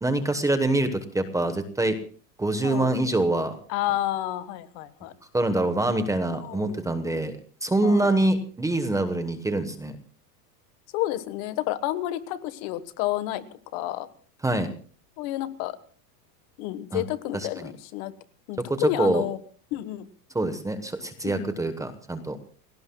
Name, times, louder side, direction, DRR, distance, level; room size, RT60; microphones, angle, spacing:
voice 1, 0.0-2.0 2.4-3.6 5.3-9.9 14.4-14.7 16.9-17.0 17.3-17.7 18.7-19.2 20.3-22.4, right 2 dB, 5° right, 9 dB, 1.1 m, -25 dB
voice 2, 2.6-2.9 3.7-5.1 6.4-6.8 7.8-8.1 10.9-13.4 13.7-14.1 15.2-15.8 16.6-18.1 18.5-19.4 19.7-20.1 21.2-21.6, left 14 dB, 45° left, 13 dB, 1.3 m, -30 dB
29.5 x 17.0 x 2.3 m, 0.42 s
supercardioid pair, 150°, 49 cm